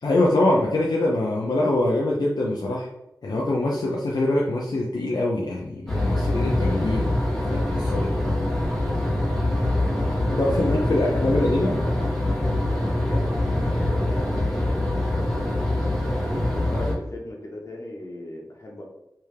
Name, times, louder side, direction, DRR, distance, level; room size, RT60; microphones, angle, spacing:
voice 1, 0.0-2.9 3.2-8.2 10.2-11.8, left 1 dB, 70° left, -3 dB, 0.6 m, -24 dB
sound 1, 5.9-16.9, left 1 dB, 5° left, 1.4 m, -24 dB
voice 2, 9.6-12.0 12.6-15.7 16.4-18.8, left 1 dB, 45° left, -1 dB, 1.2 m, -37 dB
3.4 x 3.3 x 3.3 m, 0.88 s
cardioid pair, 50°, 7 cm